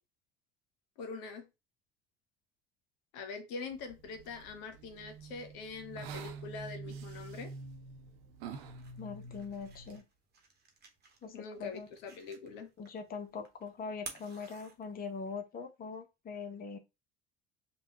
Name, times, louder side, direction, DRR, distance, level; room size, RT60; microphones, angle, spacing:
voice 1, 1.0-1.4 3.1-7.5 11.3-12.7, left 4 dB, 65° left, 0.9 m, -43 dB
sound 1, 3.7-10.0, right 4 dB, 70° right, 0.7 m, -47 dB
sound 2, 8.4-15.3, right 5 dB, 35° right, 1.1 m, -54 dB
voice 2, 9.0-10.0 11.2-11.9 12.8-16.8, left 5 dB, 30° left, 0.8 m, -42 dB
5.2 x 2.3 x 2.8 m
hypercardioid pair, 65°, 30 cm